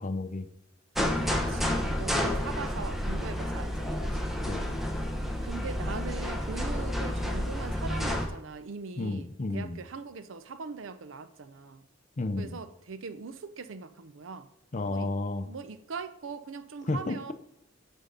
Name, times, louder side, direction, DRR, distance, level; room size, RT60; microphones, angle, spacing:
voice 1, 0.0-0.5 4.4-4.8 9.0-9.8 12.2-12.6 14.7-15.5 16.9-17.2, left 2 dB, 40° left, 10 dB, 0.6 m, -32 dB
sound 1, 0.9-8.3, left 1 dB, ahead, 0.8 m, -30 dB
voice 2, 1.1-4.3 5.4-11.8 12.4-14.5 14.9-15.1 15.4-17.3, right 4 dB, 80° right, 12 dB, 0.6 m, -41 dB
8.9 x 3.6 x 5.5 m, 0.86 s
head